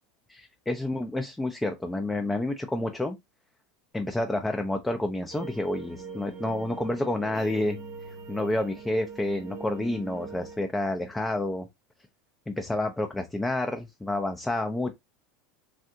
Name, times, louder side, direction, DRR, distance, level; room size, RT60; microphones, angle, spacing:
voice 1, 0.3-3.2 3.9-7.8 8.1-11.7 12.5-14.9, left 1 dB, 10° left, 0.4 m, -29 dB
sound 1, 5.3-10.6, right 5 dB, 50° right, 0.8 m, -42 dB
3.5 x 2.4 x 2.7 m
supercardioid pair, 115°, 0 cm